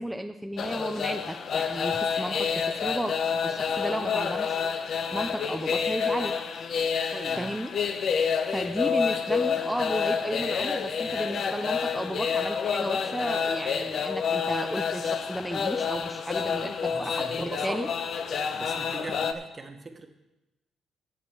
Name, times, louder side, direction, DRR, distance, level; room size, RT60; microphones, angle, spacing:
voice 1, 0.0-3.2 3.4-4.6 5.1-6.4 7.4-7.7 8.5-17.9, equal, ahead, 4 dB, 0.6 m, -33 dB
sound 1, 0.6-19.3, left 6 dB, 60° left, 0.8 m, -28 dB
voice 2, 7.1-7.5 16.9-17.8 18.5-20.1, right 3 dB, 30° right, 5 dB, 1.5 m, -40 dB
15.5 x 7.2 x 4.8 m, 0.98 s
cardioid pair, 90°, 0 cm